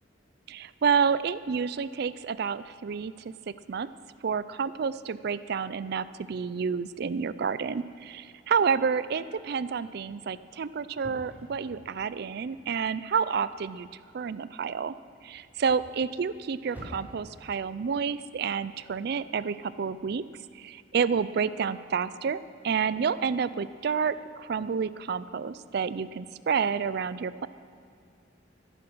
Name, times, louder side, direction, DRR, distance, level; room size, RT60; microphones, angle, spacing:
voice 1, 0.5-3.1 3.7-3.9 4.2-13.9 14.1-14.9 15.2-20.2 20.5-27.5, right 6 dB, 60° right, 15 dB, 0.4 m, -29 dB
sound 1, 9.5-19.1, equal, 10° right, 3.3 m, -52 dB
13.5 x 11.0 x 6.1 m, 2.4 s
head